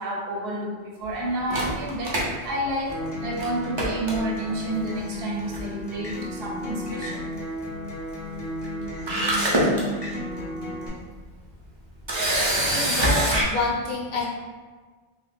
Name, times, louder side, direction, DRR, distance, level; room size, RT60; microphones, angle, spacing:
voice 1, 0.0-2.9 3.2-7.2, right 1 dB, 65° right, -2 dB, 0.7 m, -30 dB
Camera, 1.5-3.1 3.4-3.5 3.8-4.6 5.5-5.8 6.1-6.2 8.6-8.7 9.1-9.8 10.4-10.5 12.1-13.4, right 1 dB, 35° right, 0.5 m, -24 dB
Acoustic guitar, 2.9-10.9, equal, 30° left, 0.6 m, -33 dB
voice 2, 12.7-14.3, left 3 dB, 60° left, -2 dB, 0.8 m, -28 dB
2.7 x 2.2 x 3.5 m, 1.4 s
omnidirectional pair, 1.2 m